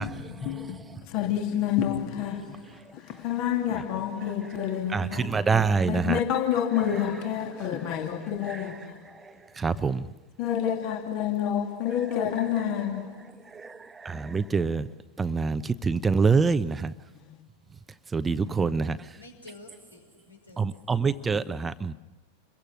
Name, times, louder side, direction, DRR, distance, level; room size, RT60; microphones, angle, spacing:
voice 1, 0.0-5.4 5.9-9.0 10.4-13.3, left 9 dB, 40° left, 2.9 m, -29 dB
voice 2, 4.9-6.2 8.5-8.6 9.6-10.1 13.5-14.9 15.2-16.9 18.1-19.0 20.6-21.9, right 5 dB, 15° right, 0.9 m, -26 dB
voice 3, 19.2-21.0, left 2 dB, 80° left, 5.6 m, -50 dB
29.0 x 23.0 x 6.3 m
figure-of-eight pair, 90°, 0 cm